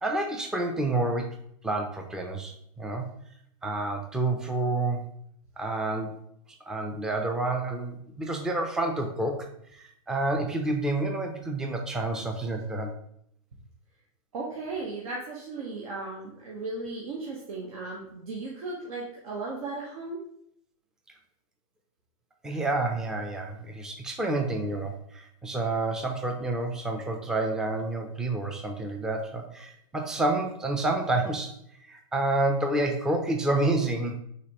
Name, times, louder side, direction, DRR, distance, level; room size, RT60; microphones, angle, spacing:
voice 1, 0.0-1.3 1.6-3.1 3.6-5.1 5.6-6.2 6.7-12.9 22.4-34.2, right 2 dB, 5° right, 3 dB, 0.4 m, -29 dB
voice 2, 14.3-20.2, right 3 dB, 80° right, -3 dB, 1.0 m, -36 dB
5.0 x 3.3 x 2.8 m, 0.70 s
supercardioid pair, 145°, 18 cm